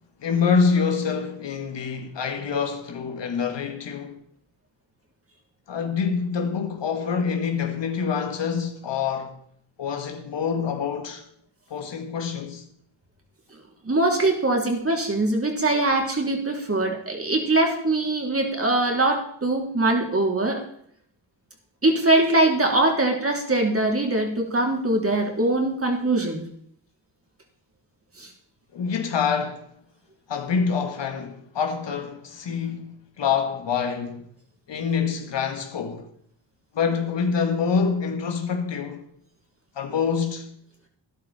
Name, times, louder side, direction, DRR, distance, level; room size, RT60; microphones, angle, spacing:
voice 1, 0.2-4.2 5.7-9.4 9.8-11.2 11.7-12.6 28.7-29.7 30.3-34.3 34.7-36.0 36.7-39.1 39.8-40.5, left 6 dB, 70° left, 2.0 m, -26 dB
voice 2, 13.8-20.6 21.8-26.4 28.2-28.3, right 2 dB, 30° right, 3.4 m, -22 dB
12.0 x 11.5 x 4.3 m
cardioid pair, 65°, 44 cm